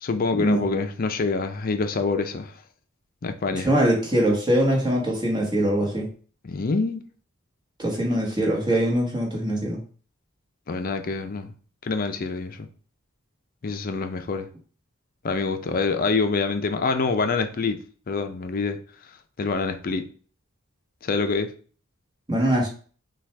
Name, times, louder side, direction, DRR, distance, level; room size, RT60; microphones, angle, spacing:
voice 1, 0.0-2.5 3.2-3.7 6.4-7.0 10.7-11.5 11.8-12.7 13.6-14.5 15.2-17.8 18.1-18.8 19.4-20.1 21.0-21.5, left 4 dB, 45° left, 0.5 m, -26 dB
voice 2, 3.6-6.1 7.8-9.8 22.3-22.7, right 1 dB, 20° right, 1.3 m, -22 dB
6.1 x 2.4 x 3.3 m
head